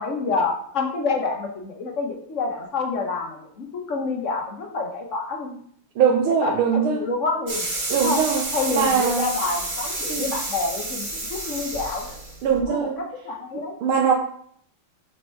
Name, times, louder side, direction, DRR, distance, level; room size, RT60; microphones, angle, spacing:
voice 1, 0.0-5.6 6.4-7.6 8.0-8.2 8.5-12.1 12.6-12.9 13.2-13.7, left 4 dB, 45° left, 2 dB, 1.2 m, -27 dB
voice 2, 6.0-7.1 7.9-8.5 8.7-9.3 10.1-10.3 12.4-13.0 13.5-14.1, right 7 dB, 80° right, 1 dB, 1.6 m, -21 dB
sound 1, 7.5-12.6, right 2 dB, 35° right, 1.5 m, -30 dB
5.8 x 4.5 x 4.5 m, 0.63 s
omnidirectional pair, 2.3 m